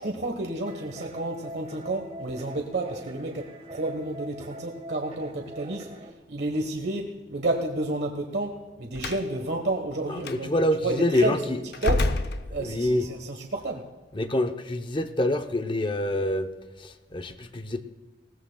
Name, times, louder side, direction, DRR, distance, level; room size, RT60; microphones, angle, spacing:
voice 1, 0.0-5.9 6.3-11.4 11.8-12.1 12.5-13.8, right 2 dB, 70° right, 3 dB, 1.3 m, -30 dB
sound 1, 0.6-6.1, equal, 40° right, 1.5 m, -43 dB
Slam, 8.9-9.3 10.2-10.4 11.7-13.0, left 2 dB, 60° left, 0.7 m, -28 dB
voice 2, 10.2-11.6 12.6-13.1 14.1-16.5 16.8-17.8, left 1 dB, 30° left, 8 dB, 0.8 m, -26 dB
20.0 x 17.0 x 2.3 m, 1.3 s
head